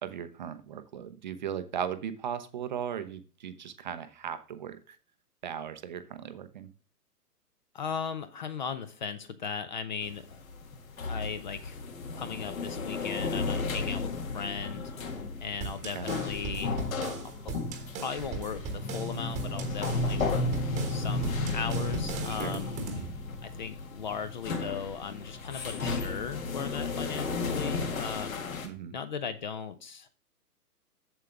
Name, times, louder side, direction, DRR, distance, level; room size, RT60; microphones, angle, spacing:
voice 1, 0.0-5.0 5.4-6.7 15.9-16.1 22.3-22.6 28.6-28.9, right 8 dB, 30° right, 10 dB, 0.5 m, -37 dB
voice 2, 7.7-10.4 11.0-11.8 12.1-14.9 15.4-16.8 17.2-17.6 18.0-22.7 23.4-28.4 28.9-30.1, left 6 dB, 30° left, 12 dB, 0.5 m, -37 dB
sound 1, 10.0-28.7, left 3 dB, 60° left, 1.9 m, -34 dB
sound 2, 15.6-23.1, right 4 dB, 15° right, 1.0 m, -39 dB
7.7 x 7.4 x 3.4 m, 0.38 s
figure-of-eight pair, 120°, 47 cm